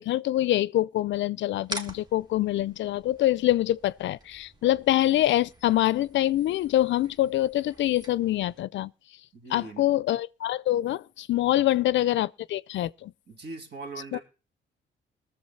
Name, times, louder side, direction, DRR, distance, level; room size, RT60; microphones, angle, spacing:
voice 1, 0.0-8.9 9.5-13.1 14.1-14.2, left 14 dB, 70° left, 0.5 m, -25 dB
sound 1, 1.6-8.6, equal, 20° right, 1.8 m, -45 dB
voice 2, 9.3-9.9 11.6-11.8 13.3-14.2, right 3 dB, 55° right, 2.9 m, -41 dB
19.5 x 7.0 x 4.2 m
cardioid pair, 90°, 20 cm